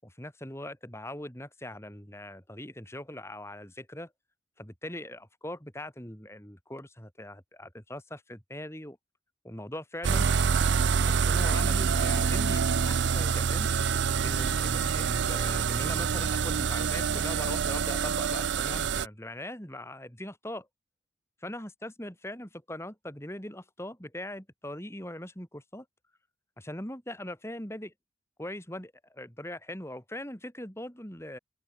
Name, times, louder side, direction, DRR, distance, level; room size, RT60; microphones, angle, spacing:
voice 1, 0.0-4.1 4.6-9.0 9.4-10.3 11.0-13.7 14.2-20.7 21.4-25.9 26.6-27.9 28.4-31.4, left 1 dB, 15° left, 7.0 m, -41 dB
sound 1, 10.0-19.1, right 6 dB, 80° right, 0.5 m, -26 dB
open air
head